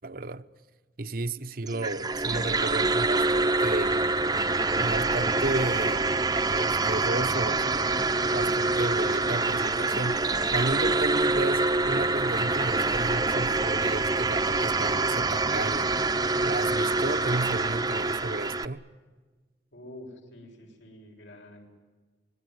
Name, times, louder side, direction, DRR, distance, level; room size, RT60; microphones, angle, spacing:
voice 1, 0.0-0.4 1.0-4.0 4.8-10.2 10.5-15.9 16.4-18.8, right 2 dB, 55° right, 1.0 m, -33 dB
sound 1, 1.7-18.7, right 3 dB, 20° right, 0.8 m, -26 dB
voice 2, 19.7-21.7, left 1 dB, 90° left, 7.3 m, -47 dB
26.5 x 20.5 x 9.5 m
head